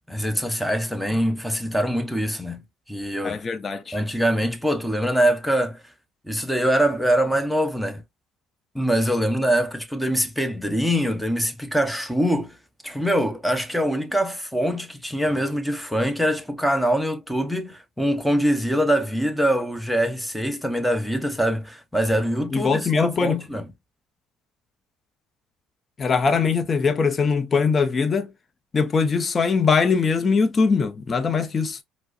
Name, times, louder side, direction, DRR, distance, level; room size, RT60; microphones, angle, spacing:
voice 1, 0.1-2.6 2.9-3.4 3.9-5.8 6.3-8.0 8.7-12.6 12.8-23.6, equal, ahead, 0.8 m, -23 dB
voice 2, 3.2-4.0 22.5-23.4 26.0-28.3 28.7-31.8, left 5 dB, 35° left, 0.5 m, -21 dB
4.5 x 2.0 x 2.4 m
supercardioid pair, 75°, 0 cm